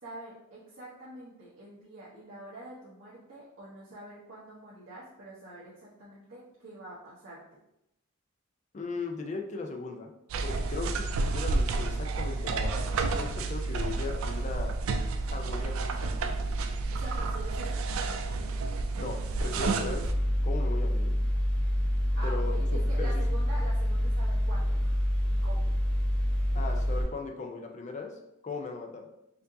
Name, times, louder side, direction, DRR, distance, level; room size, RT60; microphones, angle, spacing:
voice 1, 0.0-7.4 16.9-17.8 22.1-25.0 25.3-25.7, right 1 dB, 65° right, -10 dB, 0.9 m, -45 dB
voice 2, 8.7-10.1 10.4-14.7 15.3-16.3 18.9-20.1 20.4-21.1 22.2-22.5 23.0-23.1 26.5-28.1 28.4-29.1, left 4 dB, 35° left, 3 dB, 0.4 m, -38 dB
sound 1, 10.3-20.1, right 3 dB, 85° right, 0.3 m, -30 dB
Mechanical fan, 20.0-27.0, equal, 5° left, 0.7 m, -27 dB
4.5 x 2.6 x 2.6 m, 0.84 s
head